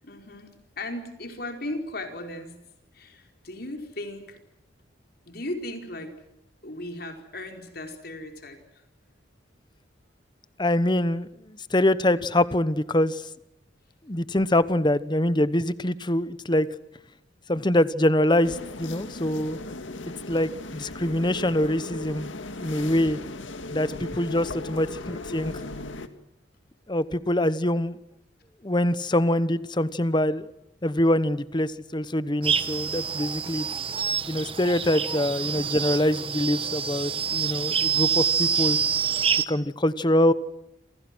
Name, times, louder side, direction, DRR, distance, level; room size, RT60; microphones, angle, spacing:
voice 1, 0.0-2.6 2.9-4.4 5.3-6.1 6.6-8.6 35.0-35.3, left 1 dB, 55° left, 4 dB, 4.8 m, -37 dB
voice 2, 10.6-13.2 14.1-16.7 17.5-19.6 20.3-22.3 22.6-23.2 23.7-25.5 26.9-28.0 28.6-30.5 30.8-33.7 34.0-38.8 39.5-40.3, left 1 dB, 25° left, 15 dB, 1.0 m, -24 dB
sound 1, 18.4-26.1, left 2 dB, 90° left, 2.1 m, -37 dB
sound 2, 32.4-39.4, right 7 dB, 30° right, 1.2 m, -26 dB
28.5 x 27.0 x 6.3 m, 0.81 s
head